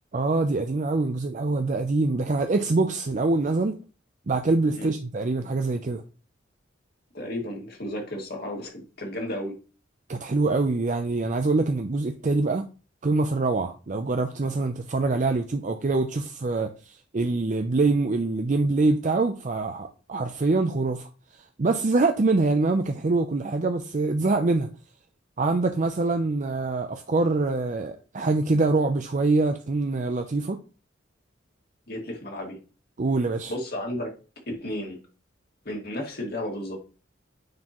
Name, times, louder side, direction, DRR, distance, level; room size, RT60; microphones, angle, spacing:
voice 1, 0.1-3.8 4.3-6.0 10.1-12.7 13.0-24.7 25.4-30.6 33.0-33.5, right 3 dB, 40° right, 0.5 m, -24 dB
voice 2, 7.1-9.6 31.9-32.6 33.5-34.1 34.5-35.0 35.7-36.8, left 1 dB, 55° left, 2.2 m, -33 dB
9.3 x 4.4 x 3.0 m
head